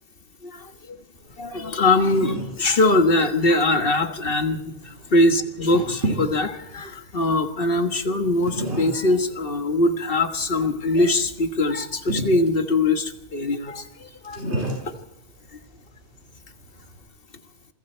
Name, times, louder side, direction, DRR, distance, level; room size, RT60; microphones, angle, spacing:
voice 1, 0.4-1.0 1.4-14.5 14.8-14.9, left 2 dB, 55° left, 7 dB, 1.7 m, -22 dB
sound 1, 1.1-17.0, right 1 dB, 75° right, 7.3 m, -35 dB
28.0 x 22.5 x 4.5 m, 0.88 s
omnidirectional pair, 1.2 m